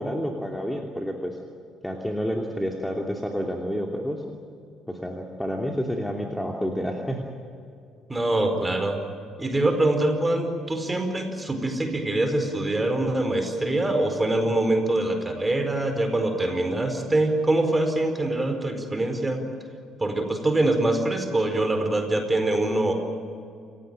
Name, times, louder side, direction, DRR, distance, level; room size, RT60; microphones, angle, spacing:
voice 1, 0.0-1.4 1.8-4.2 4.9-7.3, equal, 5° left, 1 dB, 2.9 m, -29 dB
voice 2, 8.1-9.0 9.4-19.4 20.0-22.9, right 2 dB, 15° right, 6 dB, 4.7 m, -24 dB
29.0 x 16.5 x 9.0 m, 2.4 s
figure-of-eight pair, 50°, 0 cm